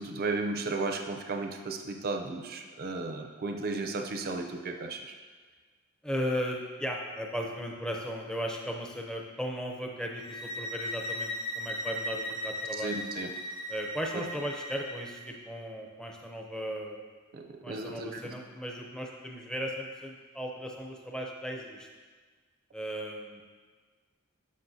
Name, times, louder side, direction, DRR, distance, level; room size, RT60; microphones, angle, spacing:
voice 1, 0.0-5.1 12.8-13.3 17.3-18.3, right 3 dB, 45° right, 4 dB, 0.5 m, -34 dB
voice 2, 6.0-13.0 13.7-17.0 17.6-21.9 22.7-23.4, equal, 5° left, 0 dB, 0.5 m, -36 dB
sound 1, 10.2-15.1, equal, 80° left, 1.4 m, -37 dB
11.5 x 5.1 x 2.7 m, 1.5 s
head